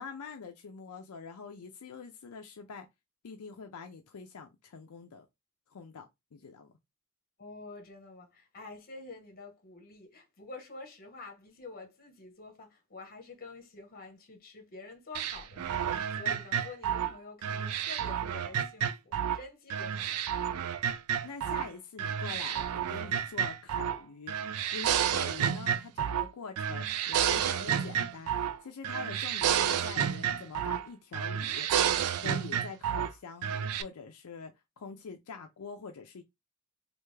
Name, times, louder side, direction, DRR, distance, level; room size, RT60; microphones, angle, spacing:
voice 1, 0.0-2.9 3.2-5.3 5.7-6.7 21.2-24.3 24.7-31.8 32.1-36.2, left 5 dB, 80° left, 0.5 m, -45 dB
voice 2, 7.4-20.3, left 3 dB, 45° left, 1.1 m, -48 dB
sound 1, 15.1-19.4 19.7-21.7 22.0-24.0 24.3-26.3 26.6-28.6 28.8-30.9 31.1-33.1 33.4-33.8, right 9 dB, 75° right, 0.3 m, -30 dB
3.4 x 2.4 x 3.2 m
head